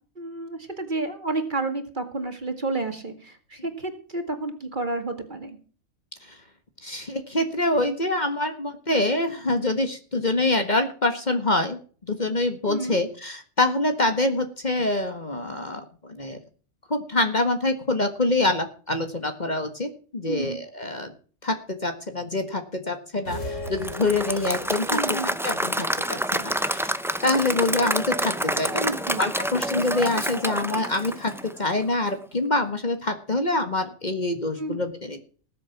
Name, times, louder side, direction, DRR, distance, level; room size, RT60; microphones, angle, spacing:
voice 1, 0.2-5.6 12.7-13.0 20.2-20.6 24.9-25.3 28.9-29.2 34.6-34.8, right 2 dB, 40° right, 6 dB, 2.2 m, -30 dB
voice 2, 6.8-16.4 16.9-21.1 21.4-25.0 25.4-26.9 27.2-31.3 31.6-35.2, left 2 dB, 35° left, 7 dB, 1.7 m, -25 dB
sound 1, 23.2-24.8, left 1 dB, 75° left, 3.2 m, -35 dB
Applause / Crowd, 23.7-31.8, equal, 5° right, 0.5 m, -28 dB
19.0 x 7.5 x 6.0 m, 0.41 s
omnidirectional pair, 1.3 m